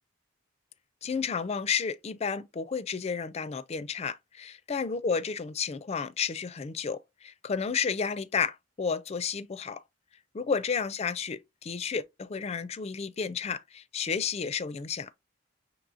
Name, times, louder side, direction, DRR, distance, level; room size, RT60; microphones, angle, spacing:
voice 1, 1.0-9.8 10.3-15.1, left 6 dB, 35° left, 0.4 m, -32 dB
6.1 x 3.0 x 2.5 m
head